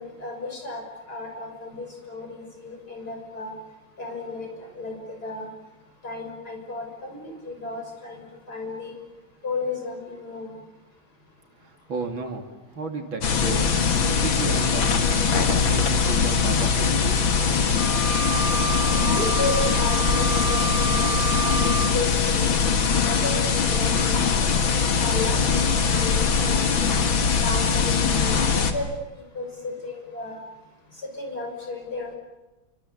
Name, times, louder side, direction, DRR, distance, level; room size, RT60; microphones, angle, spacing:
voice 1, 0.0-3.5 4.0-5.0 5.2-5.5 6.0-9.0 9.4-10.5 18.9-22.5 22.9-24.5 25.0-27.0 27.4-28.9 29.4-30.4 31.0-32.2, left 3 dB, 45° left, 2 dB, 6.9 m, -33 dB
voice 2, 11.6-12.4 12.7-13.7 14.2-17.2, right 4 dB, 70° right, 4 dB, 3.4 m, -33 dB
sound 1, 13.2-28.7, left 5 dB, 70° left, 2.7 m, -22 dB
sound 2, 17.8-21.9, right 6 dB, 10° right, 2.7 m, -30 dB
29.0 x 25.0 x 8.1 m, 1.0 s
omnidirectional pair, 2.3 m